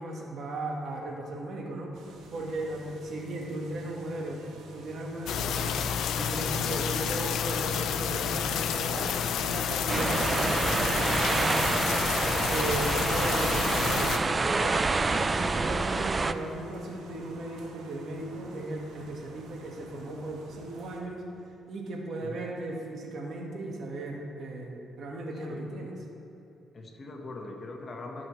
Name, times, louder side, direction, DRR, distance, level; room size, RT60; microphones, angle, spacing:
voice 1, 0.0-2.0 2.3-4.5 4.7-5.8 6.2-11.6 12.5-14.8 15.1-21.2 21.7-25.9, right 1 dB, 60° right, 0 dB, 1.7 m, -36 dB
sound 1, 1.9-21.0, right 3 dB, 85° right, 1.4 m, -50 dB
sound 2, 5.3-14.2, left 8 dB, 75° left, 0.5 m, -30 dB
sound 3, 9.9-16.3, right 3 dB, 30° right, 0.4 m, -27 dB
voice 2, 26.7-28.3, left 2 dB, 40° left, 2 dB, 1.4 m, -41 dB
17.5 x 6.1 x 3.2 m, 2.9 s
cardioid pair, 90°, 0 cm